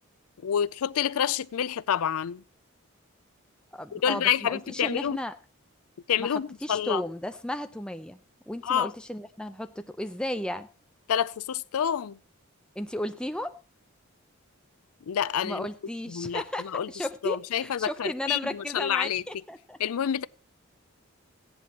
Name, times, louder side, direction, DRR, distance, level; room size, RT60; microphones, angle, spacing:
voice 1, 0.4-2.4 3.9-5.2 6.1-7.0 8.6-8.9 11.1-12.2 15.1-15.7 16.1-16.9 17.2-19.2 19.8-20.3, left 9 dB, 90° left, 0.4 m, -28 dB
voice 2, 3.7-5.3 6.2-8.2 8.5-10.7 12.8-13.6 15.4-19.8, left 1 dB, 5° left, 0.6 m, -34 dB
16.0 x 10.5 x 2.9 m
head